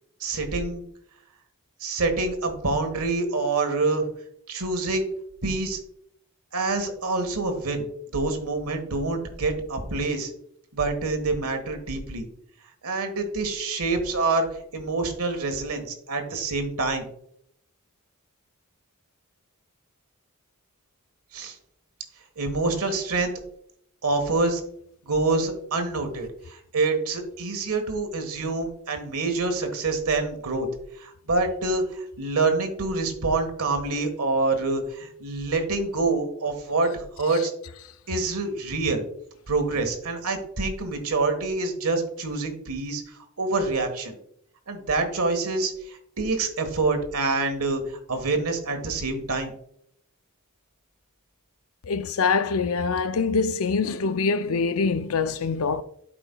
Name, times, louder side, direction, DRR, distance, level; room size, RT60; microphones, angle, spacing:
voice 1, 0.2-0.8 1.8-4.0 4.5-5.1 5.4-5.8 6.5-7.9 8.1-10.3 10.7-12.3 12.8-17.1 21.3-21.6 22.4-23.3 24.0-24.6 25.0-30.7 31.0-37.5 38.1-39.0 39.5-44.2 44.7-47.8 48.1-49.5, right 3 dB, 75° right, 1.3 m, -26 dB
voice 2, 51.9-55.8, left 4 dB, 65° left, 0.5 m, -24 dB
12.0 x 5.0 x 2.2 m
head